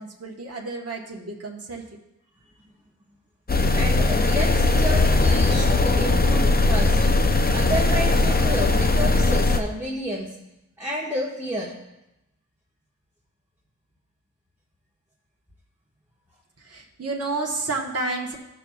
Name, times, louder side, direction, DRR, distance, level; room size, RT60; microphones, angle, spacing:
voice 1, 0.0-1.8 16.6-18.4, right 3 dB, 50° right, -1 dB, 1.2 m, -30 dB
sound 1, 3.5-9.6, left 2 dB, 30° left, 0.5 m, -19 dB
voice 2, 3.7-7.1 7.5-10.3 10.8-11.7, equal, 5° right, -5 dB, 1.4 m, -30 dB
16.0 x 6.3 x 2.3 m, 0.92 s
wide cardioid pair, 65°, 32 cm